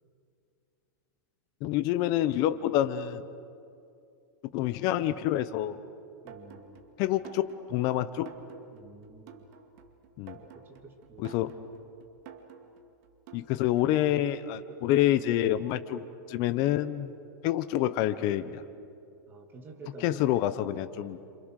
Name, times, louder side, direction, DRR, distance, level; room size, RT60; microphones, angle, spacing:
voice 1, 1.6-3.2 4.5-5.8 7.0-8.3 10.2-10.4 11.2-11.5 13.3-16.0 16.3-17.1 17.4-18.6 20.0-21.2, left 13 dB, 40° left, 12 dB, 0.9 m, -27 dB
voice 2, 6.2-6.8 8.7-9.5 10.4-11.5 19.3-21.0, right 2 dB, 20° right, 3 dB, 2.8 m, -49 dB
sound 1, 6.3-14.1, right 7 dB, 45° right, 2.3 m, -51 dB
28.5 x 27.5 x 6.6 m, 2.5 s
supercardioid pair, 150°, 11 cm